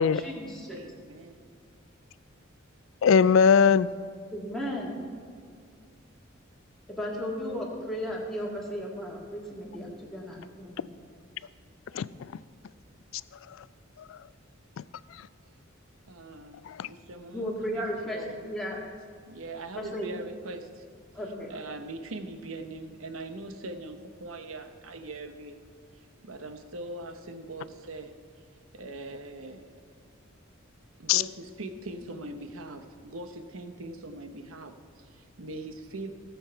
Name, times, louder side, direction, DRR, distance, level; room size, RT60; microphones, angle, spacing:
voice 1, 0.1-0.8 4.3-4.9 6.9-10.9 17.3-18.8 19.8-20.1 21.1-21.5, equal, ahead, -4 dB, 1.9 m, -35 dB
voice 2, 0.7-1.4 15.4-15.5 16.1-18.4 19.3-20.8 21.5-25.5 26.2-28.1 28.7-29.7 31.0-36.1, right 2 dB, 90° right, 7 dB, 0.9 m, -41 dB
voice 3, 3.0-3.9 11.9-12.3 14.1-14.2 14.8-14.9 16.7-16.9 31.1-31.2, left 6 dB, 70° left, 18 dB, 0.3 m, -21 dB
17.0 x 7.2 x 4.5 m, 2.1 s
head